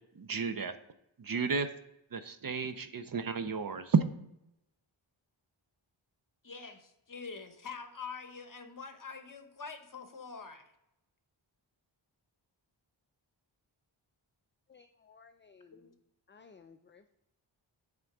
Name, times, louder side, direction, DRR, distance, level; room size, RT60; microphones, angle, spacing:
voice 1, 0.2-0.7 1.2-1.7 2.1-4.0, right 5 dB, 45° right, 10 dB, 0.6 m, -31 dB
voice 2, 6.4-10.6 15.7-15.9, left 5 dB, 40° left, 7 dB, 1.0 m, -45 dB
voice 3, 14.7-16.0 16.3-17.1, left 5 dB, 25° left, 8 dB, 0.3 m, -58 dB
7.7 x 3.7 x 5.9 m, 0.85 s
wide cardioid pair, 60°, 47 cm